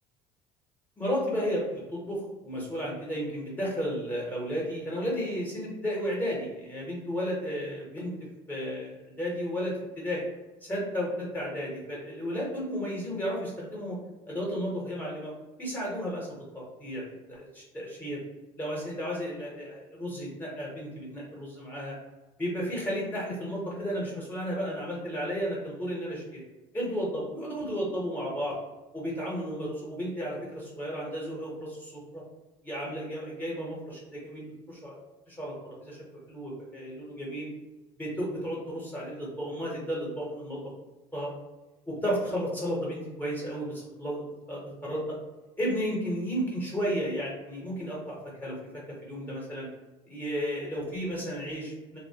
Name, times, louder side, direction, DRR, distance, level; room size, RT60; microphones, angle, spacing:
voice 1, 1.0-8.1 8.5-10.2 10.6-14.0 14.3-15.3 15.6-16.3 16.5-18.2 18.6-22.0 22.4-26.4 26.7-28.6 28.9-32.2 32.6-35.0 35.3-37.5 38.0-40.6 41.1-41.3 41.9-45.2 45.6-49.7 50.1-52.0, equal, 15° left, -5 dB, 0.7 m, -33 dB
2.6 x 2.1 x 2.7 m, 1.1 s
cardioid pair, 120°, 13 cm